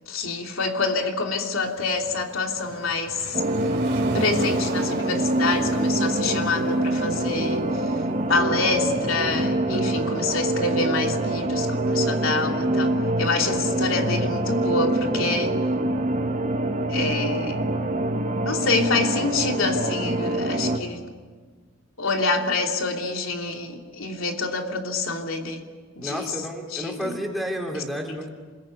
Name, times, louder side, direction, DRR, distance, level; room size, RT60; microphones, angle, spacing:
voice 1, 0.0-3.4 4.1-8.0 8.3-12.9 13.2-15.6 16.9-17.6 18.4-21.0 22.0-25.6 26.0-26.3 26.7-27.2 27.7-27.8, left 3 dB, 85° left, 2 dB, 3.0 m, -26 dB
Waves surf, 1.6-8.7, right 2 dB, 60° right, 3.5 m, -39 dB
sound 1, 3.3-20.8, right 1 dB, 40° right, 1.7 m, -25 dB
voice 2, 26.0-28.3, equal, ahead, 0 dB, 3.8 m, -31 dB
28.5 x 21.0 x 9.3 m, 1.5 s
head